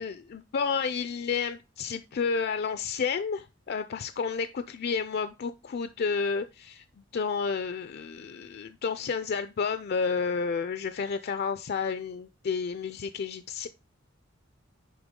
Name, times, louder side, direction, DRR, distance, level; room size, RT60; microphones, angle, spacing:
voice 1, 0.0-6.8 7.1-13.7, left 5 dB, 55° left, 0.4 m, -31 dB
10.0 x 3.5 x 3.7 m
head